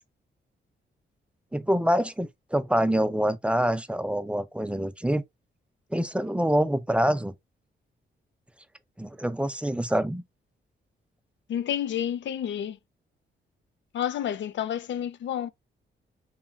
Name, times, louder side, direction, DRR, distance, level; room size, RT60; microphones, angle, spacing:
voice 1, 1.5-5.2 5.9-7.3 9.0-10.2, equal, 5° right, 0.3 m, -26 dB
voice 2, 11.5-12.8 13.9-15.5, left 10 dB, 65° left, 0.4 m, -30 dB
3.0 x 2.4 x 2.2 m
cardioid pair, 70°, 21 cm